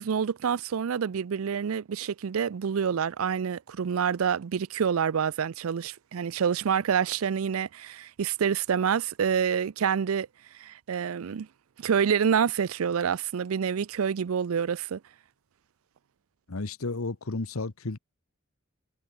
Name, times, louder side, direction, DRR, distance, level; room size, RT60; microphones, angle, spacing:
voice 1, 0.0-10.3 10.6-11.5 11.8-15.0, right 7 dB, 85° right, 0.4 m, -27 dB
voice 2, 16.5-18.0, left 3 dB, 90° left, 1.1 m, -32 dB
head